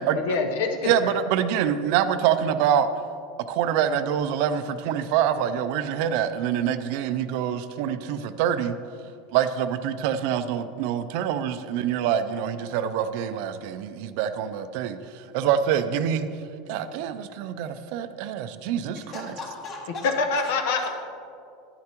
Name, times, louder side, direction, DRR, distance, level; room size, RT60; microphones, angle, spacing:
voice 1, 0.1-1.2 20.3-20.9, left 4 dB, 70° left, 4 dB, 0.9 m, -26 dB
voice 2, 0.8-2.9 3.5-8.7 9.3-15.0 15.3-16.3 16.7-19.0, right 9 dB, 55° right, 11 dB, 0.4 m, -25 dB
voice 3, 18.9-20.9, left 3 dB, 35° left, -1 dB, 1.8 m, -38 dB
10.5 x 9.5 x 2.9 m, 2.4 s
supercardioid pair, 160°, 0 cm